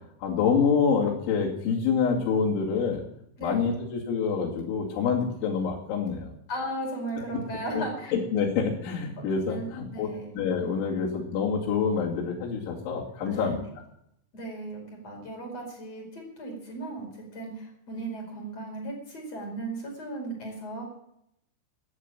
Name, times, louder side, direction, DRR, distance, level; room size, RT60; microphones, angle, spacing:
voice 1, 0.2-3.0 3.4-6.3 7.7-7.8 8.1-13.6, left 6 dB, 70° left, -4 dB, 4.8 m, -27 dB
voice 2, 3.4-3.7 6.5-8.1 9.2-10.3 13.3-13.5 14.3-20.8, right 2 dB, 30° left, 0 dB, 5.7 m, -36 dB
13.0 x 11.0 x 8.8 m, 0.77 s
omnidirectional pair, 5.8 m